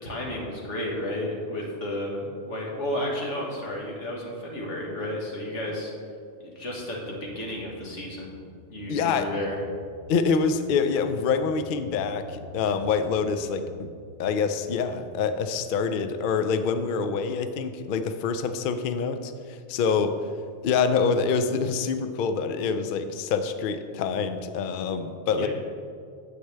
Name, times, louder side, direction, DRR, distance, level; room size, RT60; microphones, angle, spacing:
voice 1, 0.0-5.9 6.4-8.3 8.7-9.6 25.4-25.5, left 1 dB, 90° left, -2 dB, 1.9 m, -32 dB
sound 1, 2.9-3.0 3.5-4.6 5.0-6.0 6.5-16.2, right 1 dB, 60° right, 0.9 m, -49 dB
voice 2, 8.9-9.3 10.1-13.9 14.2-20.2 20.6-25.5, left 5 dB, 60° left, 9 dB, 0.6 m, -26 dB
9.4 x 7.6 x 3.3 m, 2.3 s
omnidirectional pair, 1.2 m